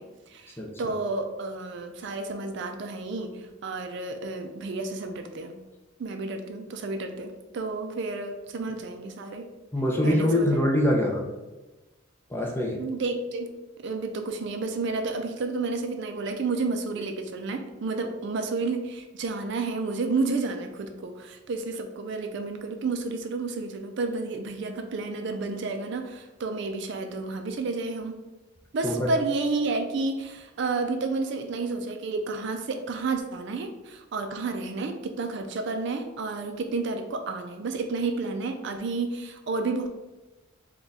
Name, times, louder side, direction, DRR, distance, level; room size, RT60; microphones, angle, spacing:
voice 1, 0.0-5.5 6.0-9.5 10.0-10.6 12.7-28.2 28.7-39.9, right 3 dB, 55° right, 6 dB, 0.4 m, -31 dB
voice 2, 9.7-11.3 12.3-12.8 28.8-29.1, left 1 dB, 10° left, 0 dB, 0.5 m, -24 dB
3.6 x 2.3 x 4.0 m, 1.1 s
head